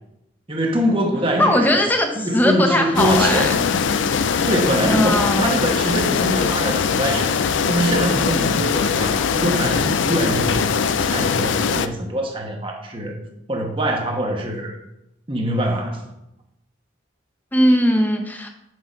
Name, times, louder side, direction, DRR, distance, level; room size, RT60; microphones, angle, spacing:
voice 1, 0.5-1.8 2.2-3.6 4.4-7.4 7.7-13.2 13.5-14.8 15.3-16.1, right 1 dB, 25° right, 1 dB, 1.2 m, -23 dB
voice 2, 1.4-3.6 4.8-5.5 17.5-18.5, left 1 dB, 10° left, 4 dB, 0.7 m, -19 dB
sound 1, 3.0-11.9, left 6 dB, 70° left, 0.4 m, -21 dB
6.4 x 5.6 x 5.1 m, 0.86 s
head